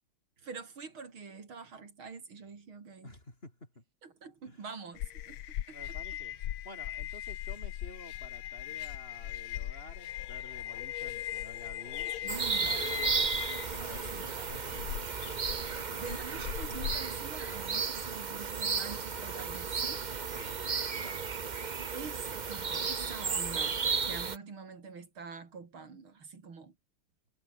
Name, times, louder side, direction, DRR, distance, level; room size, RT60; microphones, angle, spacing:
voice 1, 0.4-3.1 4.0-5.4 5.7-5.8 12.2-12.8 14.1-14.3 16.0-20.1 21.9-26.7, right 5 dB, 75° right, 4.0 m, -45 dB
voice 2, 3.0-3.8 4.4-4.7 5.7-16.0 20.3-20.6 20.9-21.3, left 1 dB, 25° left, 5.7 m, -52 dB
sound 1, 5.0-17.2, left 12 dB, 80° left, 1.8 m, -39 dB
sound 2, 12.3-24.4, right 5 dB, 55° right, 0.5 m, -34 dB
omnidirectional pair, 2.3 m